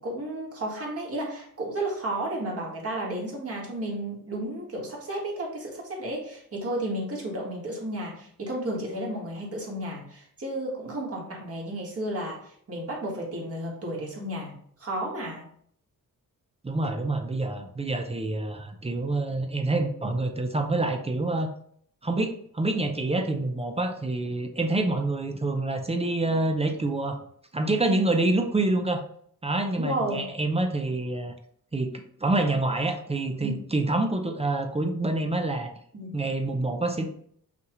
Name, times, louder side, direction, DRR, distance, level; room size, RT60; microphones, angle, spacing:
voice 1, 0.0-14.5 14.8-15.5 29.7-30.2 33.4-33.5 35.9-36.2, right 1 dB, 45° right, -3 dB, 1.6 m, -32 dB
voice 2, 16.6-21.5 22.0-27.2 27.5-29.0 29.4-31.3 31.7-35.7 36.1-37.0, right 2 dB, 20° right, 5 dB, 0.5 m, -27 dB
5.8 x 2.4 x 3.0 m, 0.64 s
wide cardioid pair, 100°, 34 cm